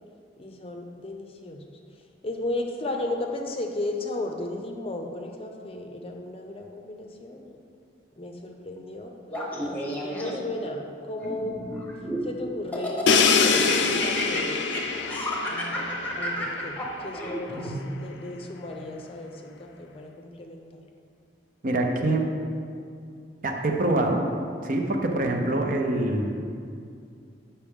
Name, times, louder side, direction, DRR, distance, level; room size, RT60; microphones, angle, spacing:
voice 1, 0.4-1.6 2.2-7.6 8.2-9.1 9.6-11.8 12.2-14.6 15.5-20.8, left 2 dB, 30° left, 3 dB, 0.6 m, -35 dB
Laughter, 9.3-10.6 11.2-12.3 12.7-17.8, equal, 10° left, 0.9 m, -32 dB
Crash cymbal, 13.1-16.9, left 5 dB, 80° left, 0.5 m, -24 dB
voice 2, 21.6-22.3 23.4-24.3 24.6-26.4, right 2 dB, 50° right, 2 dB, 0.7 m, -25 dB
8.3 x 5.7 x 3.6 m, 2.4 s
head